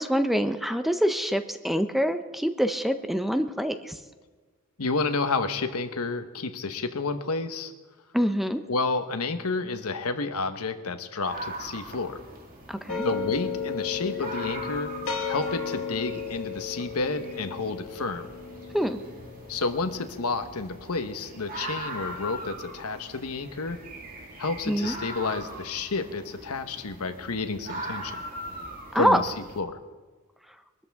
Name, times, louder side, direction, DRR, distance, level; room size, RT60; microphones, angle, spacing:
voice 1, 0.0-3.9 8.1-8.6 12.7-13.1 18.7-19.0 24.7-24.9 28.9-29.2, equal, ahead, 8 dB, 0.6 m, -25 dB
voice 2, 4.8-7.7 8.7-12.2 13.0-14.9 15.3-18.2 19.5-23.8 24.4-28.2 28.9-29.8, left 3 dB, 90° left, 8 dB, 1.1 m, -30 dB
sound 1, 11.2-29.6, right 1 dB, 40° right, 2.0 m, -41 dB
sound 2, 12.9-22.1, left 6 dB, 65° left, 1.4 m, -35 dB
22.5 x 13.5 x 3.6 m, 1.4 s
head